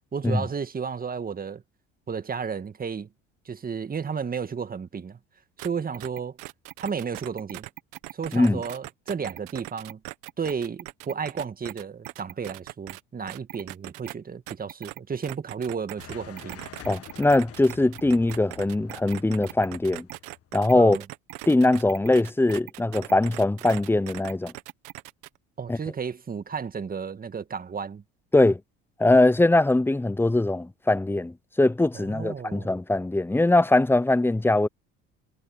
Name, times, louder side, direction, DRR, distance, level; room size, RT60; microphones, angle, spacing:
voice 1, 0.1-1.6 2.1-3.1 3.5-5.2 5.6-6.4 6.8-7.7 8.1-10.0 10.4-16.6 20.7-21.0 25.6-28.0 31.9-32.7, right 6 dB, 30° right, 1.8 m, -33 dB
sound 1, 5.6-5.7 5.9-13.0 13.3-14.1 14.5-25.4, right 22 dB, 75° right, 1.6 m, -40 dB
sound 2, 16.0-20.7, left 12 dB, 50° left, 1.8 m, -47 dB
voice 2, 16.9-20.1 20.5-21.0 21.5-24.5 25.7-25.8 28.3-28.6 29.0-34.7, left 2 dB, 5° left, 0.8 m, -21 dB
supercardioid pair, 80°, 31 cm